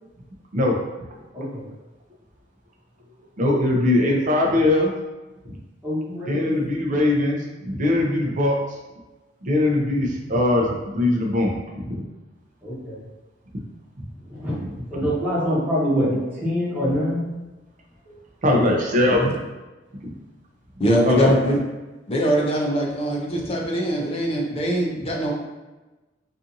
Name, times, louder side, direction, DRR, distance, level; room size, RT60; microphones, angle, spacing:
voice 1, 3.4-4.9 6.3-8.6 9.4-12.0 18.4-19.3 21.1-21.3, left 1 dB, 45° right, 0 dB, 0.5 m, -21 dB
voice 2, 5.8-6.5 12.6-13.0 14.3-14.6 14.9-17.2 20.9-21.0, equal, 10° right, -10 dB, 1.2 m, -25 dB
voice 3, 20.8-21.6 22.1-25.3, equal, 30° left, -1 dB, 0.5 m, -22 dB
2.6 x 2.5 x 2.5 m, 1.1 s
head